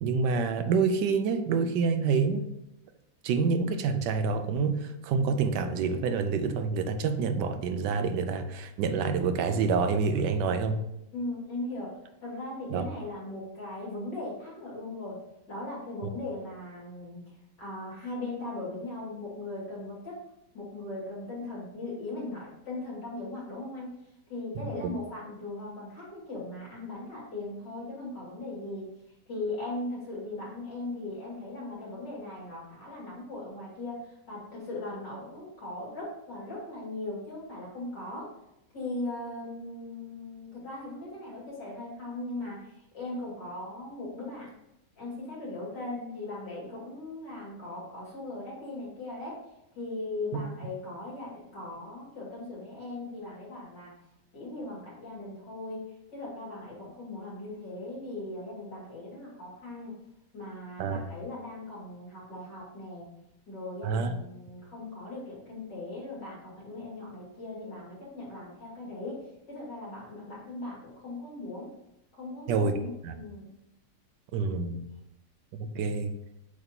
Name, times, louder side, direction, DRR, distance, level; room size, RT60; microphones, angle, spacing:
voice 1, 0.0-2.4 3.2-10.8 12.7-12.8 50.3-50.4 60.8-61.0 63.8-64.1 72.5-72.8 73.0-73.1 74.3-74.9 75.6-76.1, right 5 dB, 85° right, 9 dB, 1.2 m, -27 dB
voice 2, 11.1-11.9 12.2-15.2 15.5-17.2 17.6-20.2 20.5-23.9 24.3-28.9 29.3-38.3 38.7-44.5 45.0-49.4 49.7-53.9 54.3-55.8 56.1-59.9 60.3-63.1 63.5-69.2 69.5-71.7 72.1-73.5, left 2 dB, 90° left, -6 dB, 3.1 m, -39 dB
7.7 x 2.9 x 4.1 m, 0.83 s
omnidirectional pair, 1.8 m